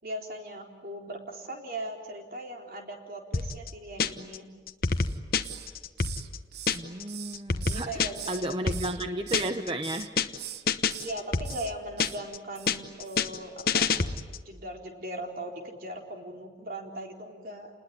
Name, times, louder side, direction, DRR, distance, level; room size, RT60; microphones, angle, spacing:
voice 1, 0.0-4.5 7.6-8.6 10.9-13.9 14.5-17.7, right 1 dB, 50° right, 2 dB, 4.0 m, -39 dB
sound 1, 3.3-4.4 4.7-7.0 7.3-9.7 10.0-10.4 10.7-12.4 12.7-14.5, left 5 dB, 55° left, 1.1 m, -28 dB
Hiss, 5.0-5.7 6.0-8.4 8.7-9.5 9.8-10.1 10.4-11.1 11.4-11.7 12.0-12.2 12.5-12.8 13.0-13.2, right 11 dB, 65° right, 1.0 m, -42 dB
voice 2, 6.7-10.1, right 1 dB, 30° right, 7 dB, 0.9 m, -33 dB
29.5 x 20.5 x 9.6 m, 1.4 s
head